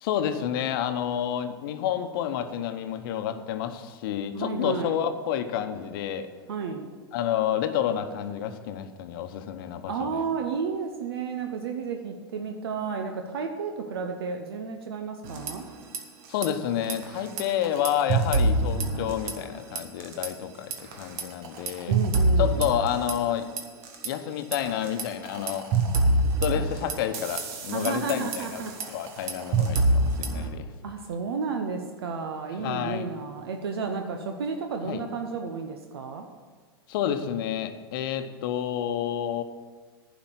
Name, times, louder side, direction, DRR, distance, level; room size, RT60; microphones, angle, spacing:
voice 1, 0.0-6.3 7.1-10.2 16.3-21.9 22.4-23.5 24.0-25.7 26.4-30.7 32.6-33.1 34.8-35.0 36.9-39.4, left 10 dB, 60° left, 9 dB, 0.9 m, -29 dB
voice 2, 4.3-5.0 6.5-6.9 9.9-15.6 21.8-22.6 27.7-28.7 30.8-36.3, right 5 dB, 75° right, 4 dB, 0.8 m, -32 dB
sound 1, 15.2-16.0 16.3-16.5 16.8-19.5 19.8-20.3 20.7-24.1 24.5-30.5, right 2 dB, 50° right, 1.5 m, -26 dB
10.5 x 5.1 x 7.6 m, 1.4 s
hypercardioid pair, 95°, 13 cm